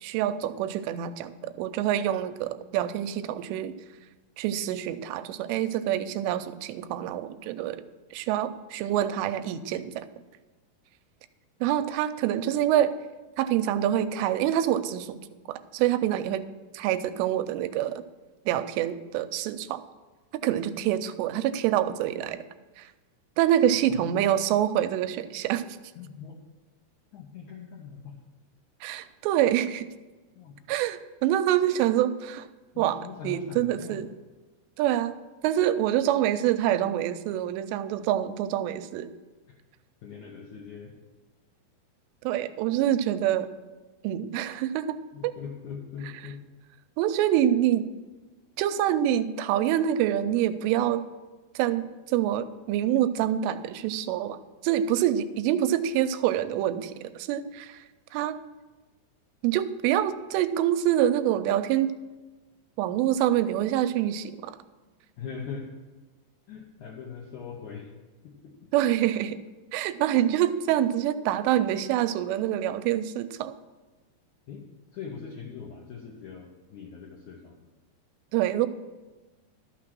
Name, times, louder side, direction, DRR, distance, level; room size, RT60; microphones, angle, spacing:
voice 1, 0.0-3.7 4.4-7.8 8.1-10.1 11.6-12.9 13.4-15.2 15.5-16.5 16.7-18.0 18.5-19.8 20.3-22.4 22.8-22.9 23.4-25.7 28.8-29.9 30.7-32.5 32.8-34.1 34.8-35.2 35.4-39.1 42.2-43.5 44.0-44.9 45.2-45.3 47.0-47.9 48.6-51.1 51.6-57.8 58.1-58.4 59.4-61.9 62.8-64.6 68.7-69.4 69.7-73.5 78.3-78.7, right 11 dB, 85° right, 12 dB, 2.8 m, -26 dB
voice 2, 26.0-26.4 27.1-28.2 30.4-30.6 32.7-34.0 40.0-40.9 45.1-46.4 65.2-65.7 66.5-67.9 68.2-68.7 74.5-74.6 74.9-77.6, left 6 dB, 80° left, -1 dB, 1.7 m, -41 dB
12.0 x 6.2 x 6.0 m, 1.2 s
omnidirectional pair, 4.9 m